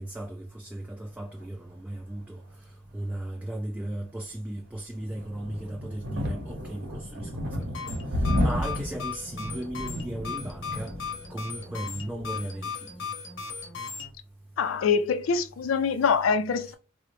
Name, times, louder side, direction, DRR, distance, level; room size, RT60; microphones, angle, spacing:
voice 1, 0.0-2.4 2.9-10.9 11.3-13.1, right 1 dB, 10° right, 0.3 m, -36 dB
sound 1, 4.9-12.4, left 1 dB, 60° right, 0.8 m, -32 dB
sound 2, 7.6-14.1, left 5 dB, 65° left, 0.8 m, -38 dB
voice 2, 14.6-16.7, left 5 dB, 90° left, 0.4 m, -24 dB
3.8 x 2.1 x 3.0 m
head